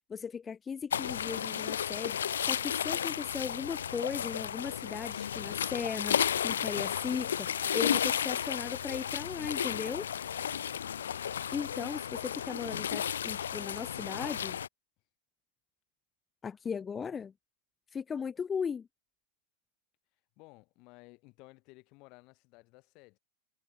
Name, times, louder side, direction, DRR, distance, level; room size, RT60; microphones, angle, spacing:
voice 1, 0.1-10.1 11.5-14.6 16.4-17.3 17.9-18.9, left 6 dB, 20° left, 3.4 m, -37 dB
sound 1, 0.9-14.7, left 9 dB, 65° left, 0.4 m, -33 dB
voice 2, 20.4-23.2, left 26 dB, 40° left, 7.4 m, -56 dB
figure-of-eight pair, 90°, 0 cm